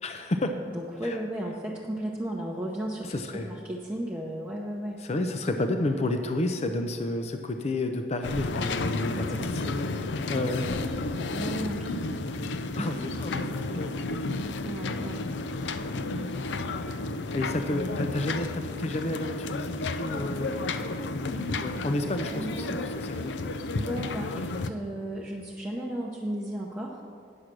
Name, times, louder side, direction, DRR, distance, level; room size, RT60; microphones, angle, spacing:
voice 1, 0.0-0.5 1.0-1.2 3.0-3.6 5.0-10.9 11.9-12.0 12.7-14.2 16.1-16.3 17.3-20.5 21.0-23.5, left 2 dB, 35° left, 6 dB, 0.5 m, -31 dB
voice 2, 0.7-5.0 9.1-9.5 11.3-12.3 12.8-12.9 14.6-15.2 20.5-20.6 22.3-22.9 23.8-27.0, right 1 dB, 10° right, -4 dB, 0.7 m, -35 dB
sound 1, 8.2-24.7, left 2 dB, 90° left, 0.5 m, -32 dB
9.8 x 6.4 x 6.0 m, 2.6 s
head